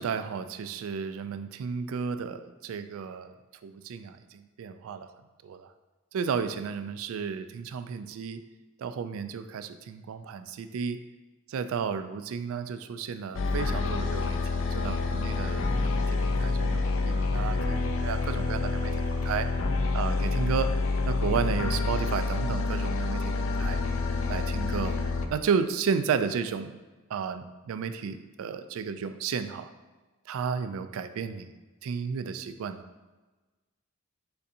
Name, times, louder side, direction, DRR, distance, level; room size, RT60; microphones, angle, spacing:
voice 1, 0.0-3.4 3.6-5.1 5.4-5.7 6.1-8.4 8.8-11.0 11.5-14.4 14.7-18.9 19.2-19.5 19.9-20.8 21.1-23.8 24.3-25.0 25.3-26.8 27.1-29.7 30.3-31.5 31.8-32.8, right 6 dB, 80° right, 10 dB, 0.3 m, -33 dB
sound 1, 13.3-25.3, left 3 dB, 65° left, 0.4 m, -28 dB
6.6 x 2.7 x 2.6 m, 1.2 s
head